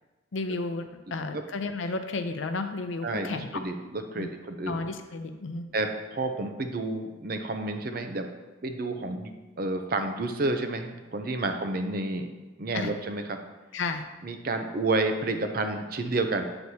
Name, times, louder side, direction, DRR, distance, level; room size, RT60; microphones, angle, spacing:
voice 1, 0.3-3.5 4.2-4.3 4.7-5.7 12.7-12.9 13.7-14.0, left 3 dB, 80° left, 7 dB, 0.6 m, -32 dB
voice 2, 3.0-4.8 5.7-8.3 8.6-12.3 12.6-13.4 14.2-16.4, right 2 dB, 50° right, 6 dB, 0.6 m, -30 dB
7.8 x 6.2 x 2.8 m, 1.2 s
head